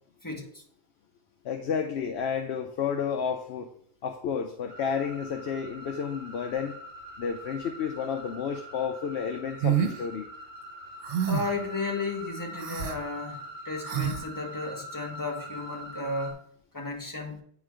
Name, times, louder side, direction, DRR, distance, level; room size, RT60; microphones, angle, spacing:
voice 1, 0.2-0.6 11.3-16.4 16.7-17.4, left 3 dB, 20° left, 0 dB, 1.4 m, -34 dB
voice 2, 1.4-3.7 4.0-6.7 7.2-10.3, left 7 dB, 70° left, 5 dB, 0.9 m, -31 dB
sound 1, 4.7-16.3, equal, 50° left, 2.0 m, -44 dB
sound 2, 9.6-10.0 11.0-11.6 12.6-13.0 13.9-14.2, right 8 dB, 75° right, 1.1 m, -27 dB
8.9 x 3.8 x 4.9 m, 0.62 s
omnidirectional pair, 1.1 m